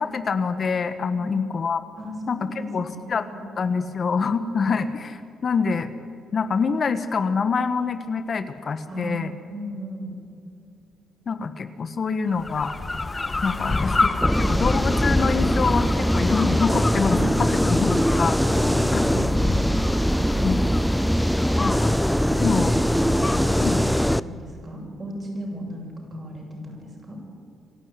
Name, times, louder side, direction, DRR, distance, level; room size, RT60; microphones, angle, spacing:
voice 1, 0.0-1.8 2.3-3.3 3.6-5.9 6.3-9.3 11.3-12.7 13.4-14.1 14.4-18.5 18.9-19.2 20.4-20.6 21.6-22.0 22.3-22.7 23.6-23.8, left 5 dB, 45° left, 11 dB, 1.1 m, -26 dB
voice 2, 2.0-2.9 3.2-3.4 8.9-10.1 13.5-13.7 17.0-18.0 18.5-19.8 22.4-22.7 22.9-27.2, equal, 35° right, -1 dB, 7.5 m, -35 dB
sound 1, 12.3-24.2, left 2 dB, 20° left, 1.1 m, -29 dB
sound 2, 14.2-24.2, equal, ahead, 0.6 m, -22 dB
26.5 x 12.0 x 9.6 m, 2.5 s
cardioid pair, 90°, 0 cm